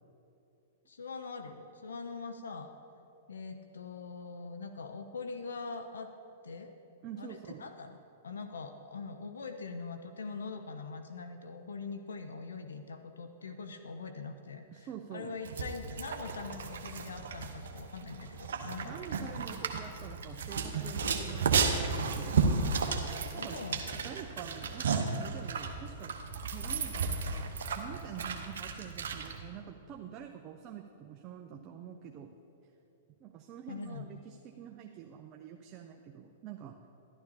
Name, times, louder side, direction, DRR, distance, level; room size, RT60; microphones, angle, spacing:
voice 1, 0.9-2.7 3.3-6.1 6.4-6.7 7.2-8.0 8.2-18.9 23.4-24.0 33.7-34.2, left 4 dB, 80° left, 7 dB, 0.6 m, -43 dB
voice 2, 7.0-7.6 14.7-15.3 18.8-22.7 23.4-23.6 24.0-26.2 26.5-32.3 33.2-36.8, right 9 dB, 35° right, 3 dB, 0.6 m, -46 dB
sound 1, 15.4-29.4, right 5 dB, 70° right, 0.8 m, -33 dB
12.0 x 11.5 x 2.8 m, 2.9 s
hypercardioid pair, 110°, 0 cm